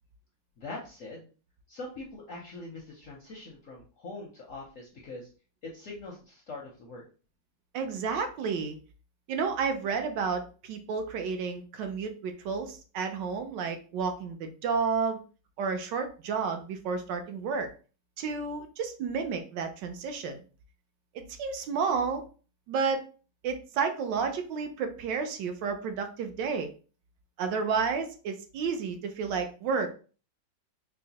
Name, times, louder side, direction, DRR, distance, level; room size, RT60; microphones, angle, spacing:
voice 1, 0.6-1.3 1.7-5.3 5.7-7.0, left 2 dB, 70° left, -2 dB, 0.8 m, -43 dB
voice 2, 7.7-8.8 9.3-15.2 15.6-17.7 18.2-20.4 21.1-22.2 22.7-23.0 23.4-26.7 27.4-29.9, right 5 dB, 75° right, 6 dB, 1.2 m, -31 dB
4.5 x 2.1 x 2.8 m, 0.37 s
omnidirectional pair, 2.0 m